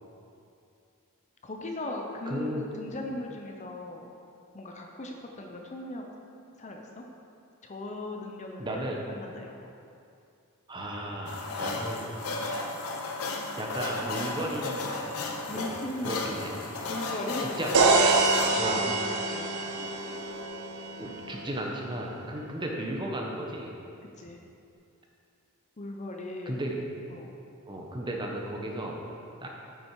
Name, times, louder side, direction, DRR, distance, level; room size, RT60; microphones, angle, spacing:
voice 1, 1.4-4.1 4.5-6.1 6.6-7.1 7.6-9.7 15.5-16.2 16.9-17.6 18.6-19.5 24.2-24.4 25.8-26.6 27.1-27.3, left 1 dB, 30° left, 1 dB, 0.7 m, -38 dB
voice 2, 2.2-2.6 8.6-9.0 10.7-12.4 13.6-14.9 15.3-15.7 16.0-16.5 17.4-18.0 18.6-18.8 21.0-23.7 26.5-26.8 27.7-29.0 29.4-29.5, right 1 dB, 20° right, -1 dB, 1.0 m, -35 dB
Toilet bowl, 11.3-20.4, left 3 dB, 70° left, 0.9 m, -35 dB
sound 1, 17.7-21.6, right 3 dB, 75° right, 0.8 m, -25 dB
8.8 x 6.2 x 4.7 m, 2.6 s
head